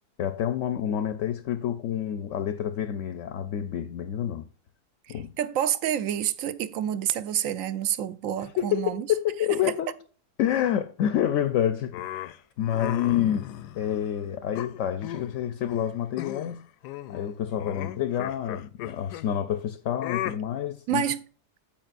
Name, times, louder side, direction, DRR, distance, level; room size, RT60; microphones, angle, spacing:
voice 1, 0.2-4.5 5.1-5.3 8.6-9.9 10.4-16.6 17.1-21.0, left 10 dB, 65° left, 0.8 m, -28 dB
voice 2, 5.1-9.1 20.9-21.2, right 10 dB, 65° right, 0.9 m, -28 dB
sound 1, 11.9-14.1 14.6-15.4 15.7-15.9 16.2-16.6 16.8-19.3 20.0-20.4, left 12 dB, 80° left, 1.1 m, -36 dB
15.0 x 5.0 x 2.4 m
omnidirectional pair, 1.7 m